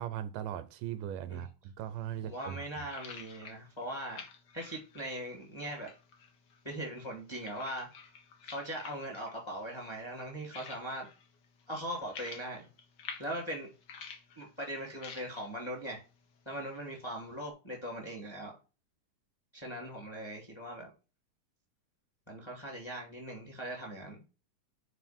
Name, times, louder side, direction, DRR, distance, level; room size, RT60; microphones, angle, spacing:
voice 1, 0.0-2.9, right 11 dB, 85° right, 2.4 m, -39 dB
sound 1, 1.8-17.5, left 6 dB, 75° left, 1.0 m, -52 dB
voice 2, 2.2-4.2 4.5-5.9 6.6-7.9 8.4-11.1 11.7-12.7 13.2-13.7 14.4-16.0 16.5-18.6 19.5-20.9 22.3-24.2, equal, 10° left, 2.1 m, -40 dB
9.1 x 3.8 x 4.4 m
omnidirectional pair, 3.7 m